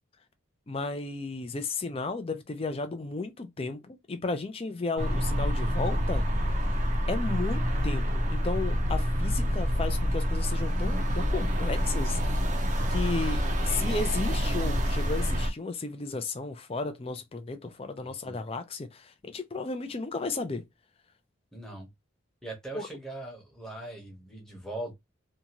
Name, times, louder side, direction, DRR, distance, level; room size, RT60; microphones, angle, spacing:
voice 1, 0.7-6.2 7.1-12.2 12.9-20.6 22.7-22.9, left 3 dB, 30° left, 0.4 m, -34 dB
sound 1, 5.0-15.5, equal, 35° right, 0.5 m, -27 dB
voice 2, 18.0-18.4 21.5-21.9 22.4-24.9, right 2 dB, 5° left, 0.9 m, -40 dB
2.7 x 2.3 x 2.9 m
head